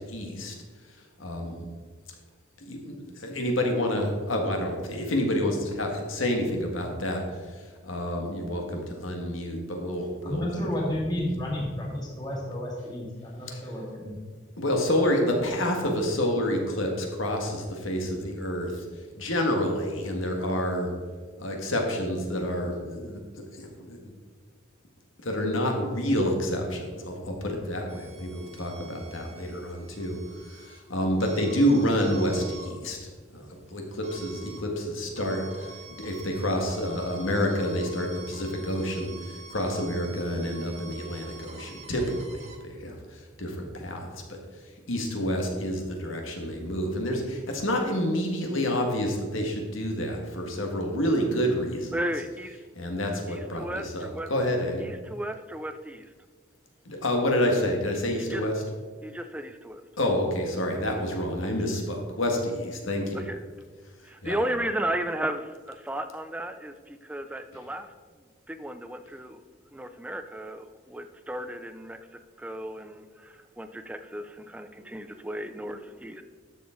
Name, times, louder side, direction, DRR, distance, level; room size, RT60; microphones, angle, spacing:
voice 1, 0.1-0.5 1.2-1.5 2.7-3.0 3.2-7.2 7.9-10.4 14.6-18.7 19.2-20.9 21.4-23.2 23.9-24.0 25.3-30.2 30.9-33.0 33.7-33.8 34.1-35.4 36.0-39.1 39.5-42.0 42.8-42.9 43.4-43.5 43.8-44.0 44.9-47.2 47.5-51.9 52.8-54.8 56.9-58.5 60.0-63.2 64.2-64.3, equal, 80° left, 2 dB, 1.8 m, -28 dB
voice 2, 10.2-14.1, left 1 dB, 20° left, -3 dB, 2.1 m, -31 dB
sound 1, 27.9-42.6, right 3 dB, 35° right, 1.0 m, -48 dB
voice 3, 51.9-52.6 53.3-54.3 54.8-56.1 58.2-58.4 59.0-59.8 63.1-63.4 64.0-67.9 68.5-69.4 69.7-72.0 72.4-76.2, right 1 dB, 5° right, 9 dB, 0.4 m, -34 dB
12.0 x 6.9 x 3.8 m, 1.5 s
head